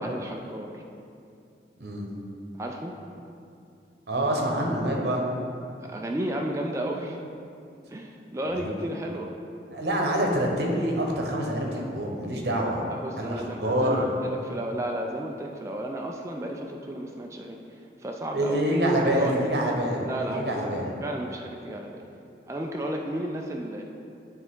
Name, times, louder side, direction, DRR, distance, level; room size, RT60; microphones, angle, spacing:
voice 1, 0.0-0.8 2.5-2.9 5.9-7.2 7.9-9.3 12.9-18.6 18.9-19.5 20.0-22.0 22.5-23.8, right 1 dB, 15° right, 1 dB, 0.3 m, -33 dB
voice 2, 1.8-2.1 4.1-5.2 8.5-8.7 9.7-12.9 13.2-14.1 18.3-20.9, equal, 70° right, 0 dB, 1.0 m, -26 dB
9.1 x 3.5 x 3.7 m, 2.5 s
head